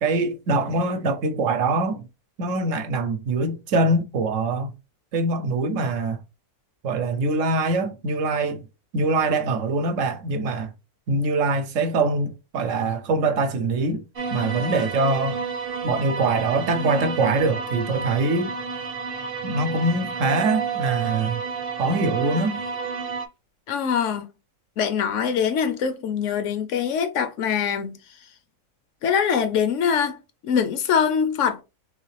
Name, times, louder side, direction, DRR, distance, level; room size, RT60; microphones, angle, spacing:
voice 1, 0.0-2.1 2.4-4.7 5.1-6.2 6.8-8.6 8.9-10.7 11.1-14.0 14.3-15.4 15.8-18.5 19.4-21.4 21.8-22.6, right 3 dB, 70° right, 1.0 m, -23 dB
sound 1, 14.2-23.3, right 5 dB, 50° right, 0.8 m, -30 dB
voice 2, 23.7-24.3 24.8-28.0 29.0-30.2 30.4-31.6, left 7 dB, 70° left, 0.9 m, -23 dB
3.8 x 3.1 x 3.1 m
omnidirectional pair, 1.4 m